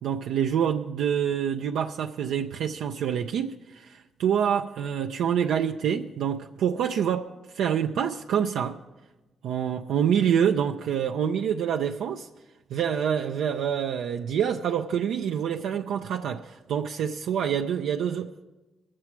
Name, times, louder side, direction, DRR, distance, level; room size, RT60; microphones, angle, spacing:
voice 1, 0.0-8.8 9.4-12.3 12.7-18.4, right 8 dB, 90° right, 0.4 m, -26 dB
20.5 x 7.5 x 4.5 m
cardioid pair, 75°, 0 cm